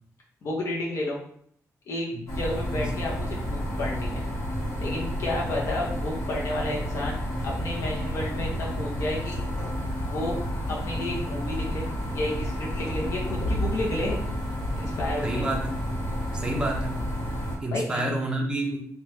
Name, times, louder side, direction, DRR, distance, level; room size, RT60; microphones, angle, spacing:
voice 1, 0.4-1.2 1.9-4.3 4.8-7.2 7.4-9.4 10.1-10.3 10.7-14.2 14.8-15.5 17.7-18.1, left 1 dB, 55° left, -3 dB, 0.6 m, -31 dB
sound 1, 2.3-17.6, equal, 85° left, 0.9 m, -30 dB
voice 2, 15.2-15.8 16.3-17.0 17.6-18.8, right 1 dB, 15° right, 0 dB, 0.5 m, -28 dB
2.9 x 2.2 x 3.0 m, 0.64 s
wide cardioid pair, 165°, 6 cm